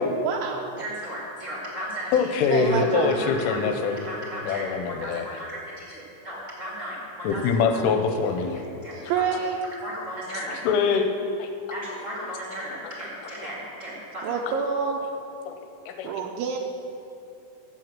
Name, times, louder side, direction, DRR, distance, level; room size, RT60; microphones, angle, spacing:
voice 1, 0.2-0.8 2.5-3.1 8.9-9.6 14.2-15.0 16.0-16.6, right 6 dB, 80° right, -1 dB, 2.9 m, -27 dB
voice 2, 0.8-2.3 2.9-7.7 8.8-9.0 9.8-10.6 11.7-14.4, equal, 40° right, -6 dB, 1.0 m, -36 dB
voice 3, 2.1-4.0 4.4-5.3 7.2-8.6 10.7-11.1 11.4-11.5 15.5-15.6 15.9-16.1, left 5 dB, 80° left, 5 dB, 3.1 m, -24 dB
11.0 x 8.1 x 7.5 m, 2.7 s
omnidirectional pair, 5.8 m